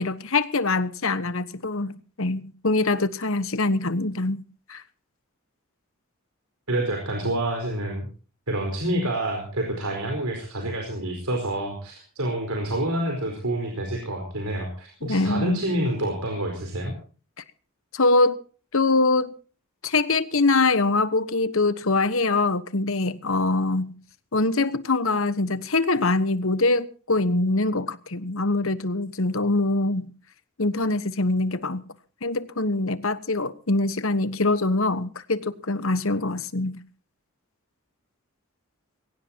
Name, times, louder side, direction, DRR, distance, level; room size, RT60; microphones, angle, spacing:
voice 1, 0.0-4.4 4.7-4.8 15.0-15.6 17.9-18.4 18.7-19.3 19.8-24.0 24.3-30.1 30.6-31.9 32.2-36.8, left 2 dB, 70° left, 1.2 m, -23 dB
voice 2, 6.7-8.1 8.5-17.0, right 1 dB, 85° right, 4.6 m, -28 dB
22.0 x 17.5 x 2.9 m
head